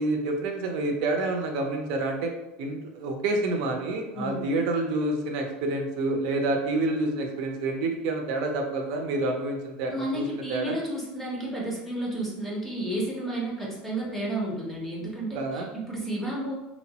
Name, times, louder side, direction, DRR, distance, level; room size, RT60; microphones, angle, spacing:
voice 1, 0.0-2.3 2.6-10.7 15.3-15.7, right 2 dB, 65° right, 2 dB, 0.5 m, -28 dB
voice 2, 4.1-4.5 9.9-16.5, right 1 dB, 5° left, -4 dB, 0.6 m, -32 dB
3.0 x 2.0 x 2.8 m, 0.94 s
supercardioid pair, 150°, 4 cm